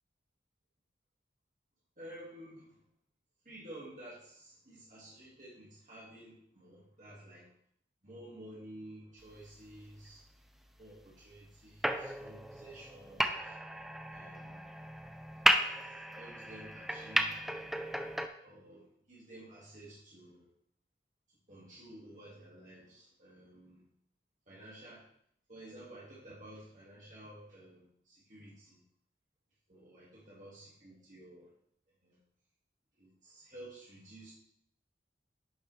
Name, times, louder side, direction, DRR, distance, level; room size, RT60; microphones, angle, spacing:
voice 1, 2.0-2.8 3.4-7.5 8.0-10.2 10.8-13.6 14.1-14.7 15.8-17.5 18.4-20.5 21.5-23.8 24.5-25.0 25.5-28.8 29.7-31.5 32.0-32.2 33.0-34.3, right 1 dB, 45° right, -6 dB, 2.1 m, -52 dB
sound 1, 11.8-18.3, equal, ahead, 0.5 m, -34 dB
10.5 x 6.9 x 3.3 m, 0.66 s
head